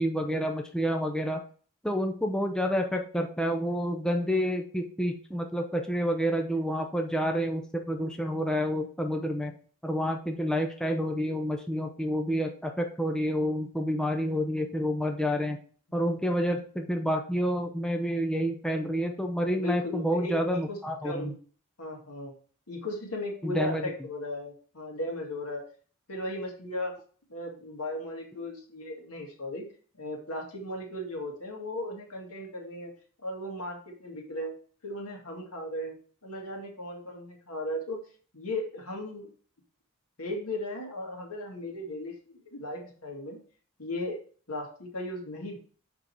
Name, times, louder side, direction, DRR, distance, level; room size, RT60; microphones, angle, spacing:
voice 1, 0.0-1.4 1.8-9.5 9.8-15.6 15.9-21.3 23.4-23.8, equal, 5° left, 2 dB, 0.6 m, -29 dB
voice 2, 19.5-20.8 21.0-21.4 21.8-22.3 22.7-25.6 26.1-26.9 27.3-29.7 30.0-32.9 33.2-34.5 34.8-36.0 36.2-38.0 38.3-39.3 40.2-43.4 43.8-44.2 44.5-45.6, left 1 dB, 80° left, 1 dB, 2.1 m, -36 dB
6.2 x 5.2 x 4.5 m, 0.44 s
head